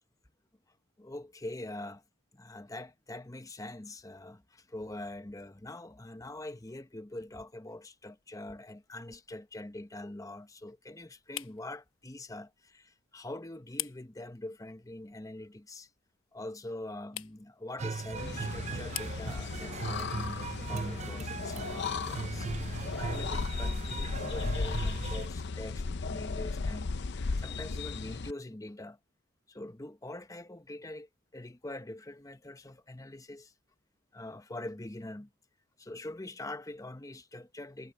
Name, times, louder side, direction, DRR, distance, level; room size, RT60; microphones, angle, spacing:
voice 1, 1.0-2.0 2.3-15.9 16.3-22.5 22.8-29.0 29.5-33.5 34.1-35.3 35.8-37.9, left 1 dB, 15° left, 0.8 m, -44 dB
sound 1, 7.8-22.6, left 14 dB, 75° left, 1.1 m, -49 dB
sound 2, 17.8-25.3, right 4 dB, 30° right, 0.5 m, -38 dB
sound 3, 18.2-28.3, left 4 dB, 55° left, 0.6 m, -35 dB
head